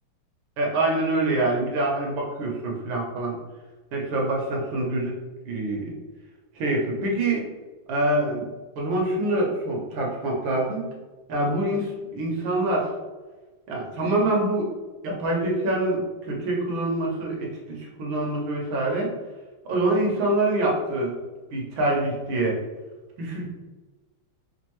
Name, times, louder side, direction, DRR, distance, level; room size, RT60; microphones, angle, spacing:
voice 1, 0.6-3.4 3.9-5.1 5.5-5.9 6.5-7.5 7.9-8.5 8.8-10.9 11.3-12.9 13.7-14.7 15.0-19.1 19.6-21.1 21.5-22.6 23.2-23.5, right 2 dB, 70° right, -1 dB, 1.5 m, -25 dB
5.2 x 2.5 x 3.0 m, 1.2 s
omnidirectional pair, 2.4 m